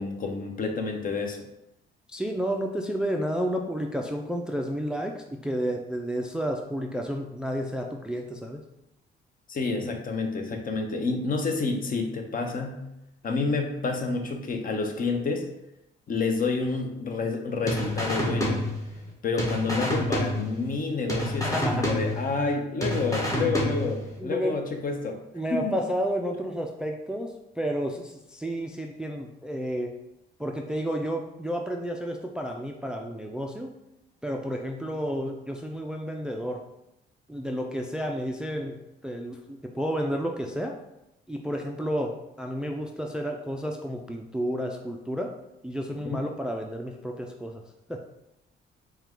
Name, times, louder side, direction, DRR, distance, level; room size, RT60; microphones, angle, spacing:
voice 1, 0.0-1.4 9.5-12.8 13.2-15.5 16.1-18.6 19.2-25.2 25.5-25.7 46.0-46.2, left 4 dB, 45° left, 4 dB, 0.7 m, -29 dB
voice 2, 2.1-8.6 21.4-21.9 24.2-24.5 25.3-29.9 30.4-33.7 34.2-36.6 37.3-40.8 41.3-45.4 45.6-47.6 47.9-48.0, equal, 5° right, 2 dB, 0.3 m, -31 dB
sound 1, 17.7-19.1 19.4-20.8 21.1-22.5 22.8-24.1, equal, 15° left, 1.0 m, -28 dB
4.4 x 2.2 x 3.7 m, 0.87 s
cardioid pair, 90°, 20 cm